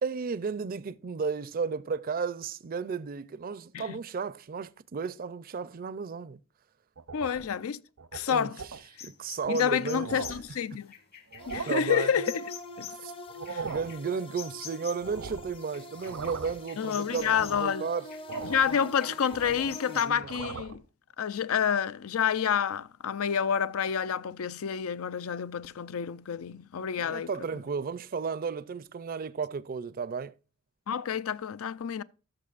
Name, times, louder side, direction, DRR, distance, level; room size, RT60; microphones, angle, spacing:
voice 1, 0.0-6.4 8.3-8.5 9.0-10.2 11.7-12.1 12.9-13.1 13.6-18.1 18.7-19.1 19.5-20.3 27.0-30.3, right 5 dB, 45° right, 0.4 m, -34 dB
sound 1, 7.0-7.5 8.0-8.2 8.6-8.8 9.4-9.5 9.8-10.5 11.3-11.9 13.3-14.0 15.0-15.6 15.9-16.7 17.1-17.7 18.3-18.7 19.1-19.8 20.1-20.8, right 5 dB, 75° right, 0.7 m, -39 dB
voice 2, 7.1-7.8 8.1-8.6 9.5-10.9 11.5-12.5 12.8-12.9 13.5-13.6 16.8-17.9 18.4-20.8 21.2-27.3 30.9-32.0, left 8 dB, 80° left, 0.4 m, -29 dB
sound 2, 9.0-15.2 15.7-17.7 18.1-20.1, left 9 dB, 50° left, 1.7 m, -47 dB
sound 3, 11.4-20.0, left 1 dB, 25° left, 0.6 m, -45 dB
13.5 x 6.4 x 2.4 m
head